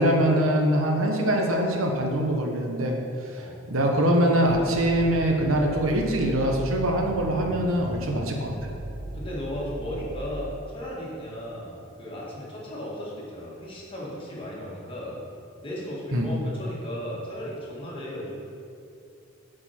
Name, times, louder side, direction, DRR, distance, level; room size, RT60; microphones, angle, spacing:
voice 1, 0.0-3.0 3.3-3.4 3.7-8.5 16.1-16.3, right 1 dB, 85° right, 1 dB, 1.0 m, -23 dB
sound 1, 4.5-10.3, right 1 dB, 65° right, 0.7 m, -37 dB
voice 2, 9.1-15.2 15.6-18.3, equal, 25° left, -6 dB, 1.8 m, -35 dB
8.4 x 5.2 x 4.4 m, 2.6 s
head